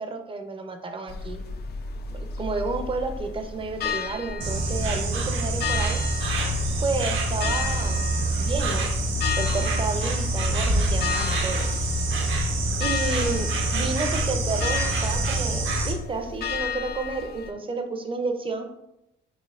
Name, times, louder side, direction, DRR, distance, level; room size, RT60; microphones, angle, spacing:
voice 1, 0.0-1.4 2.1-6.0 6.8-8.1 8.4-8.9 9.4-11.7 12.8-18.7, right 3 dB, 25° right, 6 dB, 0.5 m, -31 dB
sound 1, 1.1-17.5, left 6 dB, 55° left, 0.4 m, -34 dB
Insect, 4.4-15.9, right 1 dB, 70° right, 0.7 m, -25 dB
4.2 x 2.9 x 2.4 m, 0.86 s
cardioid pair, 90°, 20 cm